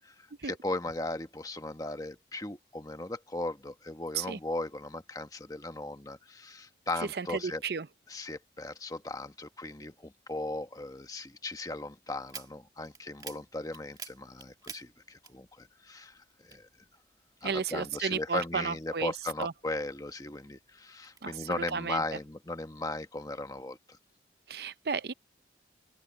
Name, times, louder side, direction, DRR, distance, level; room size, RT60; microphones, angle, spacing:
voice 1, 0.0-7.6 8.1-16.7 17.4-24.0, left 2 dB, 20° left, 1.2 m, -37 dB
voice 2, 7.1-7.9 17.4-19.1 19.4-19.5 21.2-22.0 24.5-25.1, right 5 dB, 60° right, 0.6 m, -33 dB
sound 1, 12.2-15.9 16.1-17.5 17.9-20.0 20.5-21.2, right 6 dB, 20° right, 2.0 m, -48 dB
open air
head